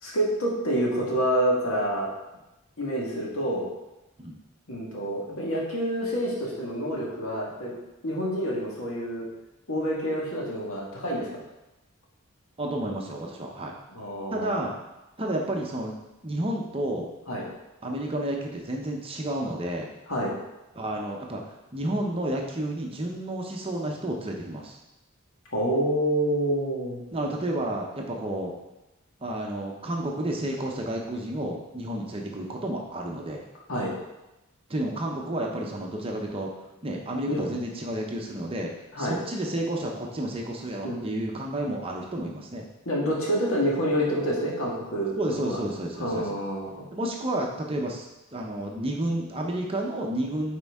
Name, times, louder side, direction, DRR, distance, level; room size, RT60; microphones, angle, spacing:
voice 1, 0.0-2.1 2.8-3.7 4.7-7.7 8.0-9.3 9.7-11.4 13.9-14.6 17.3-17.5 20.1-20.3 25.5-27.0 33.7-33.9 37.3-37.5 38.9-39.2 40.8-41.0 42.8-45.6 46.0-46.9, equal, 80° left, -4 dB, 1.7 m, -27 dB
voice 2, 12.6-13.7 14.3-14.7 15.2-16.0 16.2-17.1 17.8-19.9 20.7-21.4 21.7-24.8 27.1-28.5 29.2-33.4 34.7-36.5 36.8-42.7 45.2-46.4 46.9-50.6, right 1 dB, 25° right, 0 dB, 0.7 m, -31 dB
9.5 x 4.4 x 3.6 m, 0.97 s
head